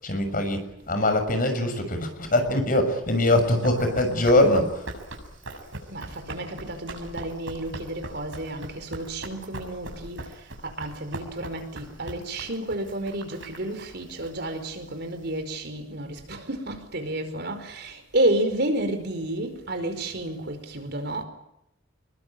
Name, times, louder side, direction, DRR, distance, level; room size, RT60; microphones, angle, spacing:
voice 1, 0.0-4.9, left 1 dB, 45° left, 6.5 m, -22 dB
Run, 3.1-15.4, right 2 dB, 75° right, 7.0 m, -41 dB
voice 2, 5.9-21.2, right 1 dB, 55° right, 4.9 m, -31 dB
27.5 x 22.0 x 9.0 m
head